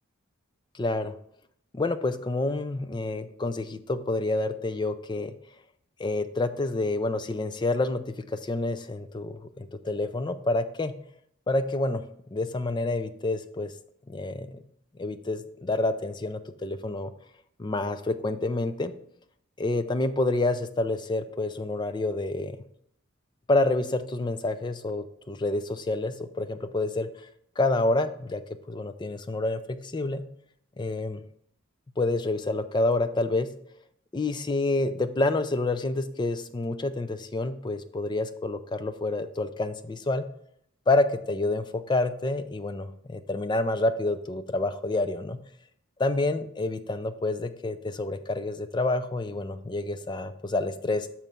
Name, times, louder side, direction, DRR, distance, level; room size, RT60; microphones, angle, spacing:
voice 1, 0.7-1.1 1.7-5.3 6.0-10.9 11.5-12.0 12.3-13.7 14.1-14.6 15.0-17.1 17.6-18.9 19.6-22.6 23.5-27.3 27.6-28.4 28.7-30.2 30.8-31.2 32.0-33.5 34.1-40.3 40.9-45.4 46.0-51.1, left 2 dB, 20° left, 11 dB, 0.3 m, -28 dB
6.1 x 4.4 x 5.3 m, 0.70 s
head